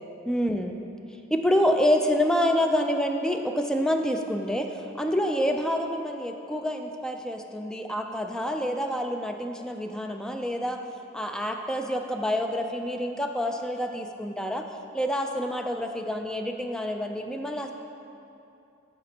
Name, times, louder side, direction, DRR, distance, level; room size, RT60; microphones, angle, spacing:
voice 1, 0.3-0.7 1.3-10.8 11.1-14.6 14.9-17.7, equal, 5° left, 4 dB, 0.4 m, -27 dB
13.5 x 5.1 x 2.8 m, 2.7 s
head